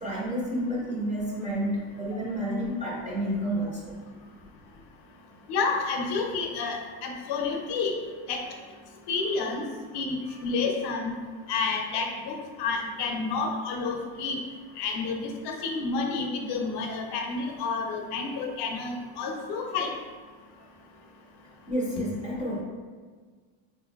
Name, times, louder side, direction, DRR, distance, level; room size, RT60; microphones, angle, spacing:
voice 1, 0.0-4.0 21.7-22.6, equal, 15° right, -5 dB, 0.4 m, -30 dB
voice 2, 5.5-6.8 7.0-7.9 8.3-8.4 9.1-9.6 9.9-11.1 11.5-14.4 14.8-19.9, left 4 dB, 55° left, 2 dB, 0.6 m, -30 dB
3.8 x 2.6 x 2.3 m, 1.5 s
cardioid pair, 130°, 49 cm